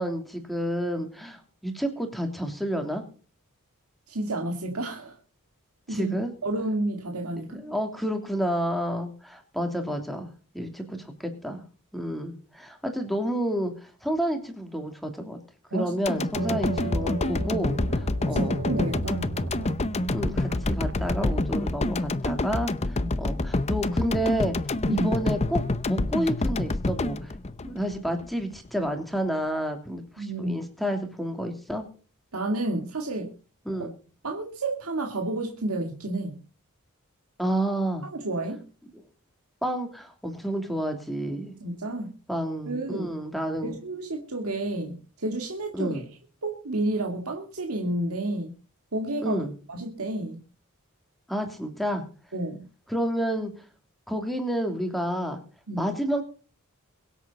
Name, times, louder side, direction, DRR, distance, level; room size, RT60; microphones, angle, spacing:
voice 1, 0.0-3.0 5.9-6.3 7.4-11.6 11.9-15.4 15.7-18.6 20.1-24.6 24.9-25.6 25.9-27.3 27.6-31.9 33.7-33.9 37.4-38.1 39.6-41.5 42.3-43.8 45.7-46.0 49.2-49.5 51.3-52.0 52.9-53.5 54.1-55.4 55.8-56.2, equal, ahead, 4 dB, 2.9 m, -30 dB
voice 2, 4.1-5.2 5.9-6.1 6.4-7.6 15.7-16.3 18.2-19.3 23.0-23.1 24.9-25.1 30.2-30.6 32.3-33.3 33.8-33.9 34.2-36.4 38.1-38.6 41.6-42.1 42.7-43.1 43.6-46.0 46.4-48.5 48.9-49.4 49.7-50.4 52.3-52.7 55.7-55.9, right 2 dB, 80° right, 2 dB, 2.1 m, -30 dB
sound 1, 16.1-28.3 28.7-28.8, left 2 dB, 30° left, 0.7 m, -27 dB
sound 2, 16.3-21.4, right 4 dB, 60° right, 0.8 m, -36 dB
23.5 x 8.3 x 4.0 m, 0.38 s
head